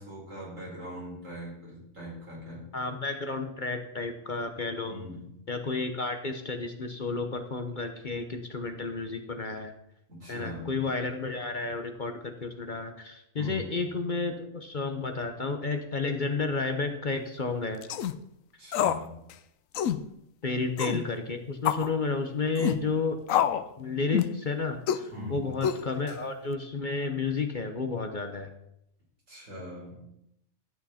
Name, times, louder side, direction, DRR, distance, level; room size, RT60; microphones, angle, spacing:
voice 1, 0.0-2.7 4.8-5.4 10.1-10.8 13.4-13.7 18.6-19.2 25.1-25.7 29.3-30.0, left 1 dB, 75° right, -4 dB, 4.7 m, -41 dB
voice 2, 2.7-4.9 5.5-9.7 10.3-17.8 20.4-23.2 23.8-28.5, left 3 dB, 40° left, 6 dB, 1.0 m, -31 dB
sound 1, 17.8-18.1 18.7-19.1 19.3-19.4 19.7-20.0 20.8-21.0 21.7-21.9 22.6-22.8 23.3-23.7 24.1-24.4 24.9-25.1 25.6-26.1, left 9 dB, 85° left, 1.0 m, -27 dB
13.0 x 8.6 x 4.3 m, 0.80 s
omnidirectional pair, 1.3 m